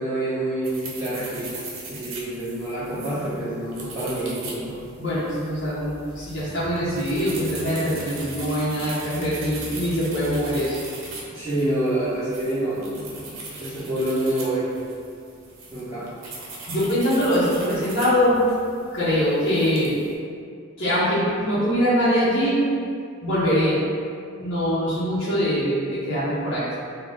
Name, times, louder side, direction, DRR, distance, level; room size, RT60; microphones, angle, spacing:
voice 1, 0.0-1.6 1.9-4.8 11.3-14.7 15.7-16.1, right 1 dB, 15° right, -19 dB, 1.5 m, -27 dB
sound 1, 0.6-20.1, right 2 dB, 85° right, 0.7 m, -39 dB
voice 2, 5.0-10.8 16.7-18.4 18.9-19.9 20.8-22.6 23.2-23.8 24.4-26.8, equal, 60° left, -12 dB, 0.9 m, -23 dB
3.9 x 2.3 x 3.5 m, 2.3 s
head